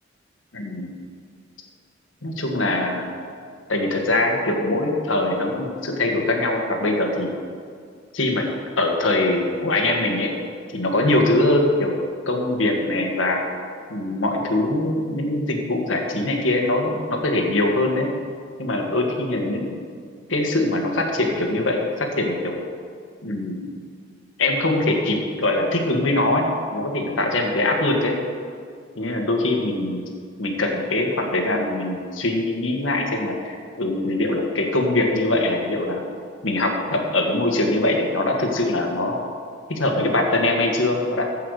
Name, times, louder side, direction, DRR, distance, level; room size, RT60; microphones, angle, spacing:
voice 1, 0.5-0.9 2.2-3.1 3.7-7.3 8.1-8.4 8.8-10.3 10.7-12.0 12.3-13.4 13.9-18.1 18.6-19.8 20.3-22.6 23.2-23.7 24.4-26.4 26.7-28.1 28.9-30.1 30.4-36.0 36.4-39.2 39.7-41.2, left 2 dB, 85° left, 2 dB, 1.7 m, -22 dB
15.0 x 5.7 x 6.5 m, 2.1 s
head